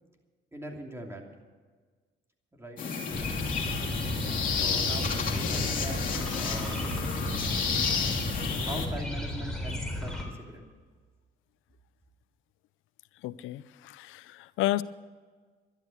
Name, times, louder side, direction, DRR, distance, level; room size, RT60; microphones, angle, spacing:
voice 1, 0.5-1.3 2.5-2.8 4.4-6.8 8.5-10.7, right 1 dB, 10° right, 1 dB, 2.8 m, -41 dB
sound 1, 2.8-8.9, left 5 dB, 45° left, 2.7 m, -31 dB
sound 2, 3.1-10.3, left 1 dB, 5° left, 3.8 m, -34 dB
voice 2, 13.2-14.8, left 15 dB, 90° left, 17 dB, 0.5 m, -32 dB
12.0 x 11.5 x 7.9 m, 1.5 s
cardioid pair, 90°, 20 cm